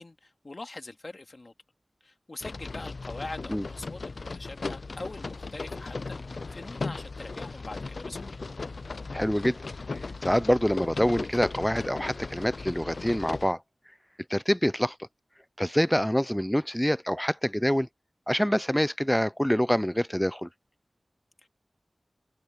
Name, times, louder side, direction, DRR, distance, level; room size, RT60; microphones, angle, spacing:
voice 1, 0.0-1.5 2.0-8.4 15.8-16.0 21.4-21.5, left 2 dB, 50° left, 2.4 m, -43 dB
sound 1, 2.4-13.5, left 3 dB, 75° left, 0.4 m, -37 dB
voice 2, 9.1-9.6 10.2-13.6 14.3-15.0 15.6-17.9 18.3-20.5, equal, 5° left, 0.5 m, -26 dB
wide cardioid pair, 70°, 0 cm